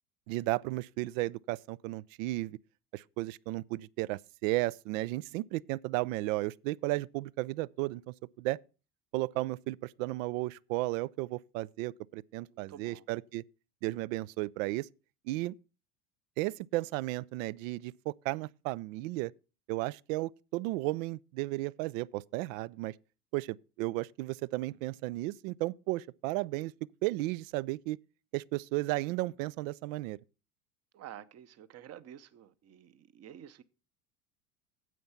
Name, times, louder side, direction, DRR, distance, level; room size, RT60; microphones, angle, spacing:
voice 1, 0.3-2.6 2.9-8.6 9.1-13.4 13.8-14.9 15.3-15.6 16.4-19.3 19.7-22.9 23.3-26.7 27.0-28.0 28.3-30.2, right 19 dB, 55° right, 0.5 m, -34 dB
voice 2, 12.5-13.0 30.9-33.6, right 10 dB, 35° right, 0.9 m, -50 dB
9.3 x 7.9 x 5.8 m
hypercardioid pair, 80°, 47 cm